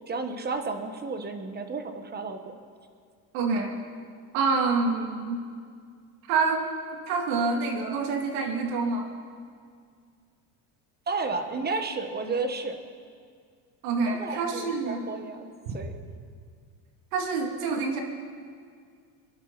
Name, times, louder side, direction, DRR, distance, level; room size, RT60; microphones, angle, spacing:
voice 1, 0.0-2.5 11.1-12.8 14.1-15.5 15.7-15.9, right 3 dB, 20° right, 7 dB, 1.3 m, -32 dB
voice 2, 3.3-3.8 4.3-5.4 6.3-6.7 7.1-9.1 13.8-15.0 15.7-15.8 17.1-18.0, right 4 dB, 85° right, 2 dB, 2.5 m, -27 dB
26.0 x 11.5 x 4.1 m, 2.1 s
cardioid pair, 125°, 43 cm